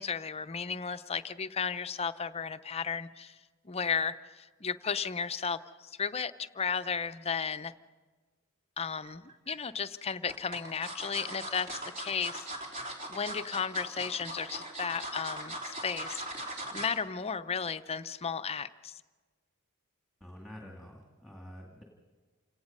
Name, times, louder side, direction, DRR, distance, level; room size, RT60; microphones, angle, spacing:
voice 1, 0.0-3.4 3.6-7.7 8.8-12.7 13.1-16.2 16.7-19.0, left 6 dB, 30° left, 12 dB, 0.6 m, -34 dB
sound 1, 9.0-9.6 10.3-17.0 17.4-17.6 17.9-18.0, right 1 dB, 40° right, 3.5 m, -40 dB
voice 2, 20.2-21.8, equal, ahead, -1 dB, 2.2 m, -48 dB
28.5 x 18.0 x 5.4 m, 1.4 s
head